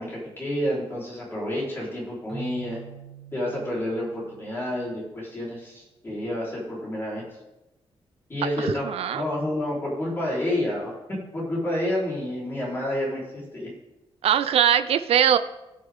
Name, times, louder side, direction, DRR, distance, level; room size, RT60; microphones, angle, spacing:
voice 1, 0.0-2.8 3.3-7.2 8.3-10.9 11.3-13.2 13.5-13.7, left 1 dB, 20° left, -6 dB, 4.0 m, -29 dB
Keyboard (musical), 2.3-5.2, right 5 dB, ahead, 2.1 m, -45 dB
voice 2, 8.6-9.3 14.2-15.4, right 9 dB, 80° right, 11 dB, 0.5 m, -21 dB
16.5 x 6.5 x 3.7 m, 0.98 s
wide cardioid pair, 165°, 10 cm